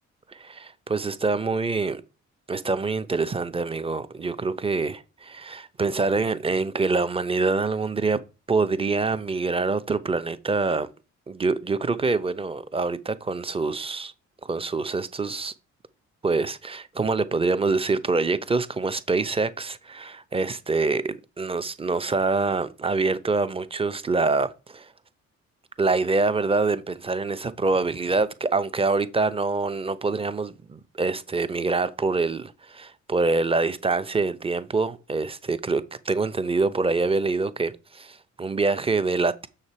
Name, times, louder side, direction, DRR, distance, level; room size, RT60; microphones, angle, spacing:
voice 1, 0.3-2.0 2.5-8.2 8.5-10.9 11.3-14.1 14.4-15.5 16.2-24.9 25.8-39.5, right 3 dB, 20° right, 0.7 m, -25 dB
6.6 x 6.6 x 4.3 m
cardioid pair, 90°, 30 cm